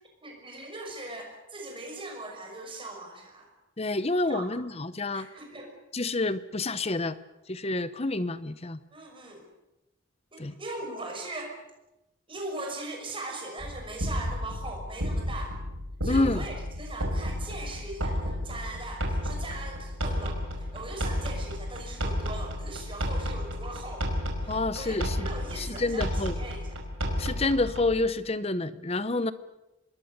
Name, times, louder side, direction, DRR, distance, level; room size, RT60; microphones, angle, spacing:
voice 1, 0.2-3.5 4.3-4.5 5.1-5.7 8.9-9.5 10.3-11.6 12.3-15.6 16.0-24.1 24.4-26.8, right 2 dB, 25° right, 2 dB, 5.8 m, -40 dB
voice 2, 3.8-5.3 5.9-7.2 7.5-8.8 10.4-10.5 16.0-16.4 24.5-25.3 25.5-26.3 27.2-29.3, left 2 dB, 30° left, 14 dB, 0.9 m, -28 dB
sound 1, 13.6-28.0, equal, 75° right, 5.1 m, -32 dB
25.5 x 21.0 x 6.7 m, 0.98 s
head